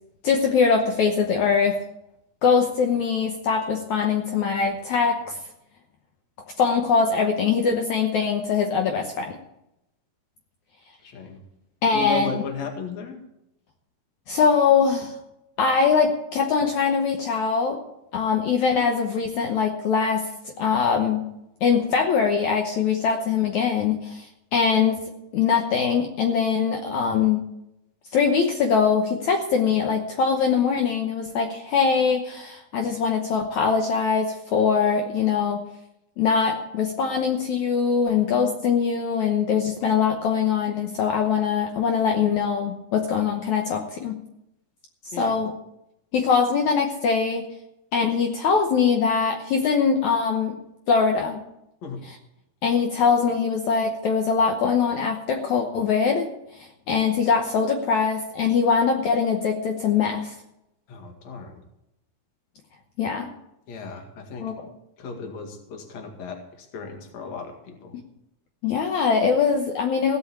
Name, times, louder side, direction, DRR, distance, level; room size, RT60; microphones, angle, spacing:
voice 1, 0.2-1.8 2.4-5.4 6.6-9.3 11.8-12.3 14.3-15.1 15.6-17.8 18.1-20.3 20.6-21.2 21.6-25.0 25.3-27.5 28.1-35.6 36.2-44.2 45.1-45.5 46.1-47.5 47.9-50.6 50.9-51.4 52.0-52.2 52.6-60.4 63.0-63.3 64.4-64.7 68.6-70.2, left 6 dB, 70° left, 3 dB, 1.8 m, -22 dB
voice 2, 11.0-11.4 11.9-13.2 45.1-45.4 51.8-52.0 60.9-61.6 63.7-64.5 65.0-67.9, left 5 dB, 50° left, 4 dB, 2.7 m, -35 dB
17.0 x 6.0 x 8.6 m, 0.86 s
omnidirectional pair, 4.5 m